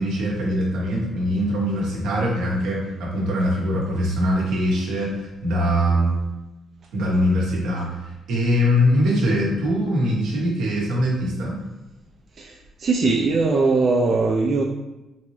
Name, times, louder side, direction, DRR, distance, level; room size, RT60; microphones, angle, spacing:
voice 1, 0.0-6.2 6.9-7.9 8.3-11.6, equal, 90° right, -4 dB, 1.1 m, -22 dB
voice 2, 12.8-14.6, right 3 dB, 50° right, 0 dB, 0.4 m, -20 dB
3.7 x 2.8 x 3.1 m, 1.0 s
cardioid pair, 90°, 0 cm